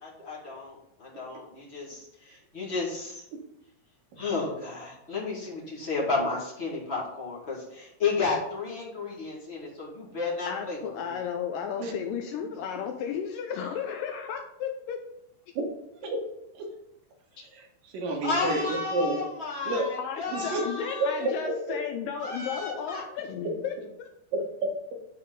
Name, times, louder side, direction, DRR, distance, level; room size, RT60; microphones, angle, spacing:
voice 1, 0.0-3.2 4.2-11.1 18.2-21.3 22.2-23.0, left 4 dB, 30° left, -5 dB, 1.3 m, -32 dB
voice 2, 4.1-4.6 11.8-11.9 15.6-15.7 16.0-16.2 16.5-16.7 17.4-19.2 19.6-19.9 20.3-20.6 20.9-21.8 24.3-25.0, right 2 dB, 65° right, 1 dB, 2.8 m, -30 dB
voice 3, 10.5-15.0 20.0-23.7 24.0-24.1, left 8 dB, 90° left, 4 dB, 2.0 m, -34 dB
10.5 x 4.3 x 3.9 m, 0.80 s
omnidirectional pair, 4.5 m